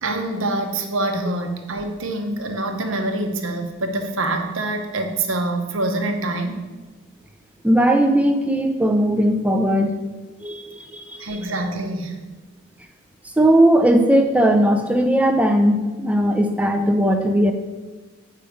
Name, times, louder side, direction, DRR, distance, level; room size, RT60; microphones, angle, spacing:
voice 1, 0.0-6.7 11.2-12.1, right 2 dB, 60° right, 5 dB, 0.9 m, -25 dB
voice 2, 7.6-9.9 10.4-11.5 13.4-17.5, right 1 dB, 5° right, 4 dB, 0.5 m, -18 dB
8.2 x 5.6 x 5.0 m, 1.2 s
head